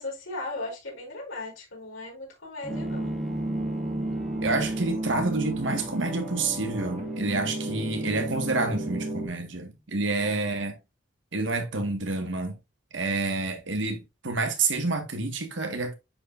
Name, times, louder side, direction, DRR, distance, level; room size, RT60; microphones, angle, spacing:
voice 1, 0.0-3.2 10.2-10.4, left 2 dB, 90° left, 4.3 m, -37 dB
Bowed string instrument, 2.6-9.7, equal, ahead, 0.6 m, -40 dB
sound 1, 2.7-9.3, right 2 dB, 35° right, 1.3 m, -33 dB
voice 2, 4.4-10.8 11.3-12.6 12.9-15.9, right 3 dB, 70° right, 1.6 m, -28 dB
9.6 x 4.7 x 2.5 m
head